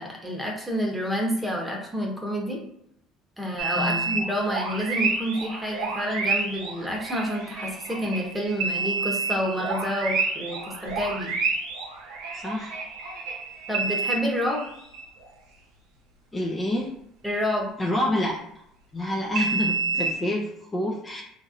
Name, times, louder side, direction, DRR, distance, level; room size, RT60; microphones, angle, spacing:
voice 1, 0.0-2.6 3.4-11.3 13.7-14.7 17.2-17.7, equal, 10° right, -1 dB, 1.0 m, -28 dB
sound 1, 3.6-15.1 19.4-20.1, right 4 dB, 75° right, 0.7 m, -29 dB
voice 2, 3.8-4.1 12.3-12.8 16.3-16.9 17.8-18.4 18.9-21.2, left 1 dB, 25° left, -1 dB, 0.5 m, -27 dB
2.8 x 2.7 x 2.5 m, 0.74 s
hypercardioid pair, 75°, 0 cm